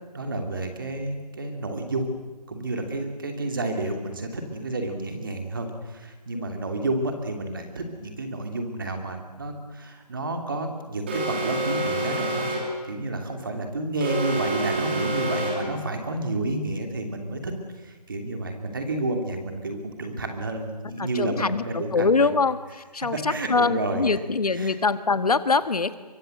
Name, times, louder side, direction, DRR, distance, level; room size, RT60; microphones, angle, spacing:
voice 1, 0.1-2.1 2.5-12.5 12.9-17.5 17.8-22.3 23.3-24.0 24.6-24.7, right 2 dB, 30° right, 4 dB, 2.7 m, -30 dB
Alarm, 11.1-12.8 14.0-15.8, right 1 dB, 15° right, 3.1 m, -28 dB
voice 2, 21.0-25.9, left 4 dB, 60° left, 12 dB, 1.6 m, -24 dB
25.0 x 23.5 x 7.8 m, 1.3 s
hypercardioid pair, 180°, 21 cm